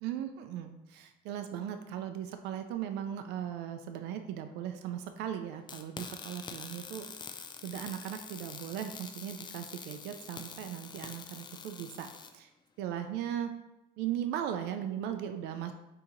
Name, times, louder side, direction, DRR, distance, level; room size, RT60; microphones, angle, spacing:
voice 1, 0.0-7.1 7.6-12.1 12.3-12.5 12.8-13.5 14.0-15.7, right 10 dB, 85° right, 7 dB, 0.4 m, -38 dB
sound 1, 5.7-12.3, left 5 dB, 25° left, 0.4 m, -46 dB
4.2 x 2.8 x 3.8 m, 0.95 s
cardioid pair, 110°, 17 cm